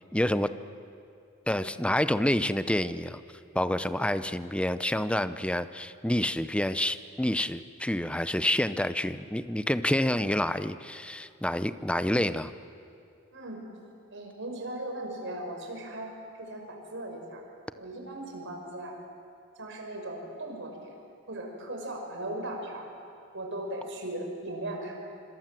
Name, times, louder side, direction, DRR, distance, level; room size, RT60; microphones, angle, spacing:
voice 1, 0.1-0.5 1.5-3.2 3.5-12.5, left 1 dB, 5° left, 12 dB, 0.7 m, -28 dB
voice 2, 13.3-13.6 14.1-17.4 17.8-19.0 19.6-20.9 21.3-22.9 23.3-25.0, right 1 dB, 65° right, 2 dB, 5.5 m, -38 dB
26.5 x 26.0 x 7.7 m, 2.4 s
head